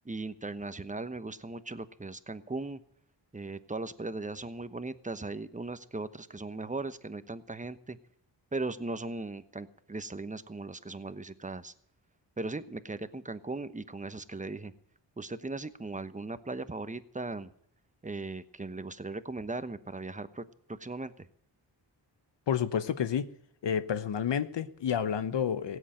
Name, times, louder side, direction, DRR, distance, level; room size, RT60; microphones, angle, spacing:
voice 1, 0.0-2.8 3.3-8.0 8.5-11.7 12.4-14.7 15.2-17.5 18.0-21.2, right 3 dB, 15° right, 13 dB, 1.1 m, -38 dB
voice 2, 22.5-23.3 23.6-25.8, left 8 dB, 65° left, 13 dB, 1.0 m, -30 dB
16.5 x 8.3 x 8.9 m, 0.68 s
cardioid pair, 55°, 46 cm